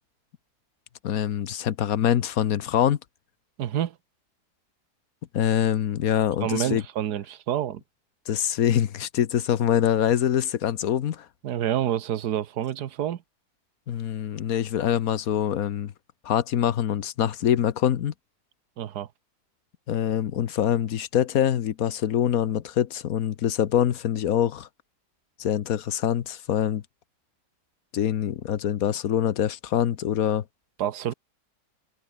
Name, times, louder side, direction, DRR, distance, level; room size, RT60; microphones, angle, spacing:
voice 1, 1.0-3.0 5.3-6.8 8.3-11.3 13.9-15.9 16.2-18.1 19.9-24.7 25.4-26.8 27.9-30.4, left 10 dB, 65° left, 1.4 m, -24 dB
voice 2, 3.6-4.0 6.4-7.8 11.4-13.2 18.8-19.1 30.8-31.1, right 10 dB, 80° right, 1.5 m, -28 dB
omnidirectional pair, 1.7 m